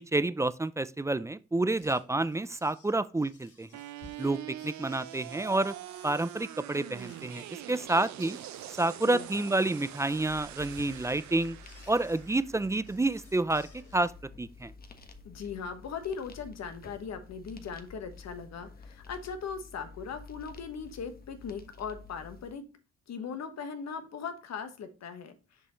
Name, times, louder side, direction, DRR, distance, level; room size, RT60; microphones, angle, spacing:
voice 1, 0.0-3.7 4.2-5.7 6.0-8.4 8.8-11.6 11.9-14.1 14.4-14.7, right 2 dB, 10° right, 0.3 m, -29 dB
sound 1, 1.7-14.2, left 4 dB, 80° left, 3.0 m, -59 dB
sound 2, 3.7-13.8, right 14 dB, 70° right, 0.5 m, -44 dB
voice 2, 9.1-9.4 15.2-22.6 23.1-25.4, left 6 dB, 60° left, 1.3 m, -39 dB
sound 3, 10.1-22.5, left 4 dB, 30° left, 1.1 m, -51 dB
6.7 x 5.4 x 3.0 m
cardioid pair, 90°, 30 cm